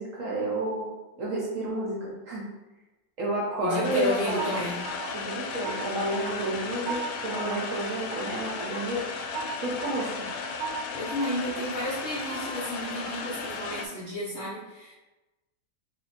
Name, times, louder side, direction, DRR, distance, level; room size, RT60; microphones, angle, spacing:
voice 1, 0.0-2.5 3.2-4.7 5.1-9.1 9.6-10.3, right 1 dB, 55° right, -4 dB, 1.0 m, -31 dB
voice 2, 3.6-4.8 10.9-14.9, left 1 dB, 55° left, -6 dB, 0.8 m, -32 dB
sound 1, 3.8-13.9, left 5 dB, 90° left, 1.3 m, -35 dB
sound 2, 3.8-13.7, right 4 dB, 85° right, 1.3 m, -40 dB
3.5 x 2.7 x 4.1 m, 1.1 s
omnidirectional pair, 1.9 m